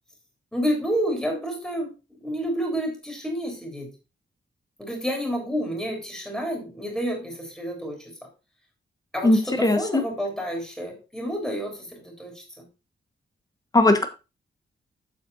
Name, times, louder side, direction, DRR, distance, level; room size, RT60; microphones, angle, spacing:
voice 1, 0.5-1.9 2.2-3.9 4.8-8.3 9.1-12.7, equal, ahead, 1 dB, 3.4 m, -29 dB
voice 2, 9.2-10.0 13.7-14.1, left 2 dB, 20° left, 8 dB, 1.4 m, -19 dB
7.8 x 7.5 x 4.1 m, 0.28 s
wide cardioid pair, 165°, 19 cm